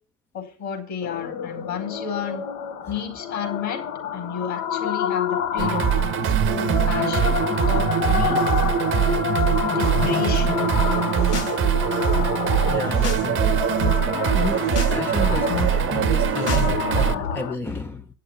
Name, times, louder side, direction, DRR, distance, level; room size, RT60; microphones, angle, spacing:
voice 1, 0.3-2.4 2.9-3.8 4.1-8.4 9.6-10.6, left 7 dB, 35° left, 4.6 m, -32 dB
sound 1, 1.0-17.6, left 8 dB, 55° left, 1.4 m, -28 dB
sound 2, 5.6-17.1, right 9 dB, 25° right, 0.9 m, -22 dB
sound 3, 11.0-11.6 11.8-13.3 13.6-13.9 14.4-15.0 15.3-17.3, left 5 dB, 75° left, 3.1 m, -33 dB
voice 2, 12.6-13.5 14.3-14.6 14.9-18.1, left 3 dB, 5° left, 0.5 m, -31 dB
9.7 x 6.6 x 8.4 m
hypercardioid pair, 85°, 47 cm